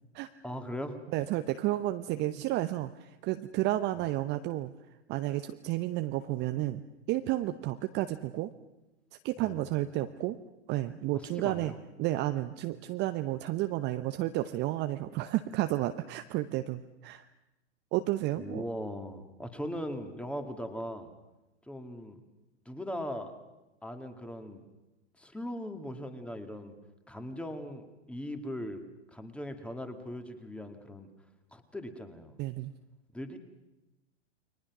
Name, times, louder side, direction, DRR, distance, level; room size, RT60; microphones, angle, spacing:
voice 1, 0.4-1.0 4.0-4.1 9.4-9.7 11.1-11.7 18.4-21.1 21.7-22.2 22.7-23.4 23.8-24.6 25.2-26.7 27.1-28.8 29.1-31.1 31.5-32.4 33.1-33.4, equal, 5° left, 7 dB, 2.1 m, -39 dB
voice 2, 1.1-4.7 5.1-6.8 7.1-8.5 9.2-10.4 10.7-11.7 12.0-17.2 17.9-18.6 32.4-32.7, right 15 dB, 30° right, 8 dB, 0.8 m, -31 dB
29.5 x 22.0 x 6.1 m, 1.0 s
hypercardioid pair, 115°, 36 cm